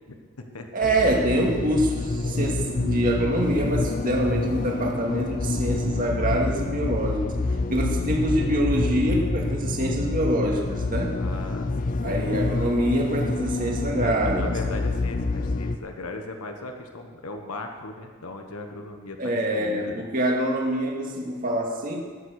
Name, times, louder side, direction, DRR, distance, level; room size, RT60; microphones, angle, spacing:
voice 1, 0.1-0.7 11.1-12.2 14.0-20.0, left 2 dB, 85° left, 4 dB, 1.3 m, -38 dB
voice 2, 0.7-7.4 7.7-11.2 12.0-14.5 19.2-22.0, right 1 dB, 40° right, 0 dB, 2.1 m, -25 dB
sound 1, 0.8-15.8, left 3 dB, 35° left, 0.5 m, -27 dB
19.5 x 7.6 x 6.5 m, 1.5 s
head